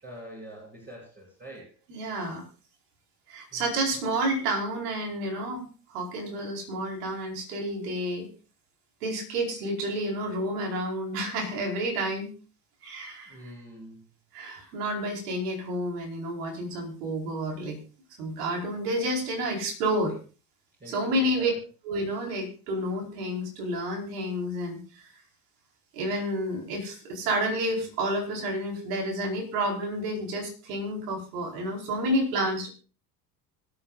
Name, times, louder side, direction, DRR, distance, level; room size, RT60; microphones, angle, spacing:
voice 1, 0.0-1.7 3.5-3.8 13.3-14.0 20.8-21.5, equal, 20° right, -5 dB, 7.6 m, -45 dB
voice 2, 1.9-2.4 3.3-8.3 9.0-12.3 12.8-13.4 14.3-17.8 18.2-20.1 20.9-21.5 21.8-25.1 25.9-32.7, right 1 dB, 70° right, 1 dB, 4.7 m, -30 dB
25.5 x 8.8 x 2.5 m, 0.36 s
hypercardioid pair, 70°, 48 cm